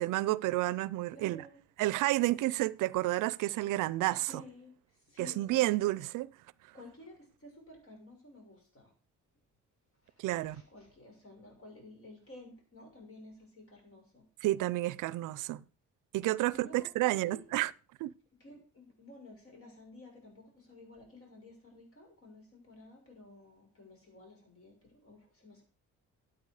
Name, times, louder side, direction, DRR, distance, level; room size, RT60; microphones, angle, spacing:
voice 1, 0.0-1.4 1.8-4.3 5.2-6.3 10.2-10.6 14.4-15.6 16.1-17.7 18.0-18.1, right 17 dB, 90° right, 0.5 m, -30 dB
voice 2, 1.1-1.6 4.2-5.9 6.7-8.9 10.0-14.2 16.5-17.4 18.4-25.6, left 2 dB, 45° left, 6.8 m, -53 dB
13.0 x 8.7 x 4.8 m
cardioid pair, 90°, 30 cm